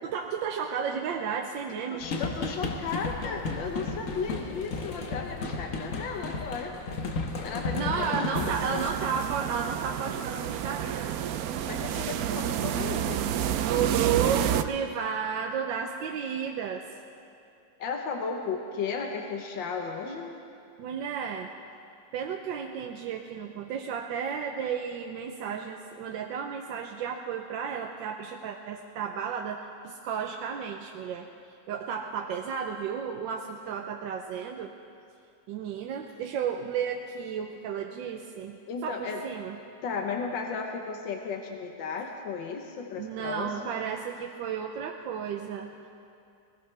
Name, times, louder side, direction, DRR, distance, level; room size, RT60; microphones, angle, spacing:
voice 1, 0.0-2.1 7.7-11.6 13.6-16.8 20.8-21.5 22.1-31.3 31.7-34.7 35.5-39.6 43.0-45.9, right 7 dB, 85° right, 2 dB, 1.4 m, -33 dB
voice 2, 1.7-6.7 7.4-8.9 11.7-13.2 17.8-20.4 38.7-39.2 39.8-43.6, left 5 dB, 85° left, 2 dB, 1.7 m, -35 dB
sound 1, 2.0-8.9, left 3 dB, 50° left, 1.2 m, -33 dB
sound 2, 8.3-14.6, right 10 dB, 70° right, 0.9 m, -29 dB
19.5 x 19.5 x 3.3 m, 2.6 s
omnidirectional pair, 2.0 m